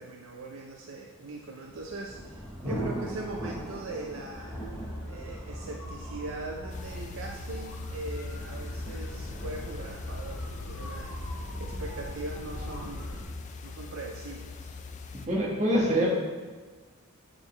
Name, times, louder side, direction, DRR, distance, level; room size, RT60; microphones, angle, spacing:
voice 1, 0.0-4.7 5.0-13.2 13.6-14.7, right 2 dB, 60° right, 1 dB, 0.5 m, -41 dB
Thunder, 1.3-12.9, right 1 dB, 5° left, 0.8 m, -42 dB
sound 1, 4.3-13.2, left 1 dB, 65° left, 1.5 m, -39 dB
sound 2, 6.7-15.3, left 4 dB, 30° left, 0.3 m, -43 dB
voice 2, 15.3-16.1, equal, 30° right, -3 dB, 1.3 m, -25 dB
7.9 x 3.9 x 4.2 m, 1.4 s
head